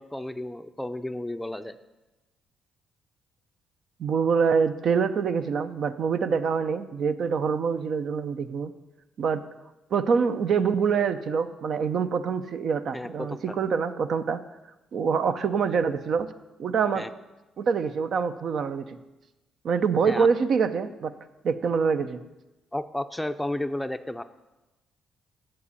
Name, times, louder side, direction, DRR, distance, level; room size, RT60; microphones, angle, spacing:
voice 1, 0.0-1.8 12.9-13.4 16.9-17.1 20.1-20.3 22.7-24.2, left 1 dB, 5° left, 10 dB, 0.5 m, -32 dB
voice 2, 4.0-8.7 9.2-9.4 9.9-14.4 14.9-16.3 16.6-17.1 17.6-19.0 19.6-21.1 21.4-22.2, right 6 dB, 60° right, 10 dB, 0.6 m, -25 dB
7.8 x 7.3 x 8.4 m, 1.0 s
cardioid pair, 90°, 0 cm